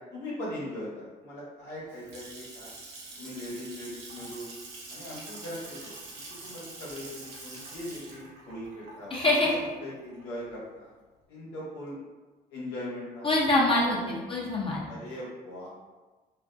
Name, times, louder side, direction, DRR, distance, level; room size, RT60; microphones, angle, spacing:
voice 1, 0.0-2.7 3.2-4.5 4.9-5.9 6.4-9.1 9.4-10.9 11.3-12.0 12.5-13.3 13.8-14.1 14.9-15.7, left 1 dB, 90° left, -6 dB, 1.0 m, -40 dB
Water tap faucet / Sink (filling or washing) / Splash splatter, 1.7-10.5, right 2 dB, 85° right, 0.7 m, -45 dB
voice 2, 9.1-9.5 13.2-14.8, left 2 dB, 30° left, -4 dB, 0.6 m, -25 dB
2.4 x 2.2 x 2.5 m, 1.2 s
supercardioid pair, 75°, 17 cm